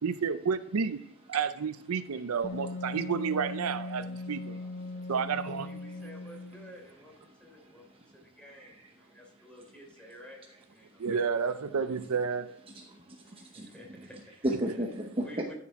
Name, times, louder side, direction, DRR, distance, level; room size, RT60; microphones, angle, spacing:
voice 1, 0.0-1.0 1.3-4.6 5.1-5.7 6.0-6.1 11.0-12.6, right 6 dB, 85° right, 0.5 m, -31 dB
Wind instrument woodwind instrument, 2.4-6.9, left 2 dB, 30° left, 0.7 m, -39 dB
voice 2, 4.5-10.4 10.7-11.4 11.7-12.1 13.2-14.3 15.2-15.5, equal, 5° left, 3.7 m, -52 dB
voice 3, 7.6-8.1 10.9-11.1 12.7-13.7 14.4-15.2, equal, 25° right, 0.9 m, -35 dB
13.5 x 7.5 x 3.6 m
head